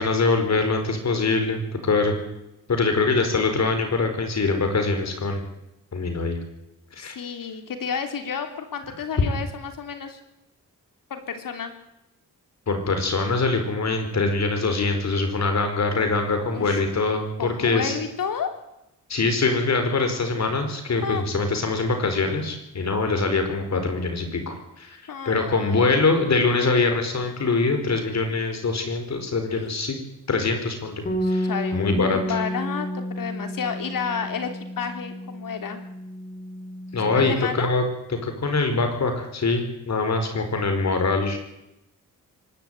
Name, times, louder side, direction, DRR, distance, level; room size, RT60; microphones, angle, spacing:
voice 1, 0.0-2.1 2.7-5.4 5.9-6.4 7.0-7.2 12.7-18.0 19.1-25.0 25.2-30.0 30.3-32.4 36.9-37.8 38.1-41.4, left 3 dB, 50° left, 6 dB, 4.8 m, -23 dB
voice 2, 7.0-10.2 11.1-11.7 16.4-16.8 17.4-18.5 21.0-21.2 25.1-25.9 31.2-34.5 34.8-35.8 37.1-37.7, left 6 dB, 70° left, 6 dB, 3.3 m, -31 dB
Bass guitar, 31.1-37.3, equal, 25° left, 3.2 m, -31 dB
24.5 x 12.0 x 9.1 m, 0.88 s
wide cardioid pair, 115°, 34 cm